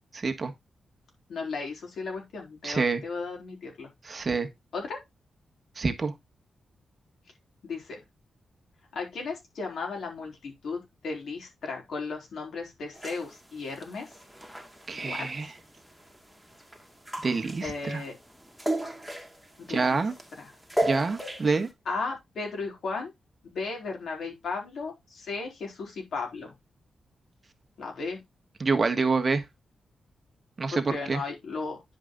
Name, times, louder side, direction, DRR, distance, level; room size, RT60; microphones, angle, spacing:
voice 1, 0.1-0.5 2.6-3.0 4.0-4.5 5.8-6.1 14.9-15.5 17.2-18.0 19.7-20.1 20.8-21.7 28.6-29.4 30.6-31.2, right 4 dB, 40° right, 1.6 m, -27 dB
voice 2, 1.3-3.9 4.7-5.0 7.6-8.0 8.9-14.1 14.9-15.5 17.6-18.2 19.6-20.0 20.4-20.5 21.9-23.1 23.4-26.5 27.8-28.2 30.7-31.8, left 4 dB, 75° left, 4.3 m, -35 dB
sound 1, 12.9-21.7, right 1 dB, ahead, 2.2 m, -36 dB
10.0 x 5.3 x 3.9 m
cardioid pair, 90°, 0 cm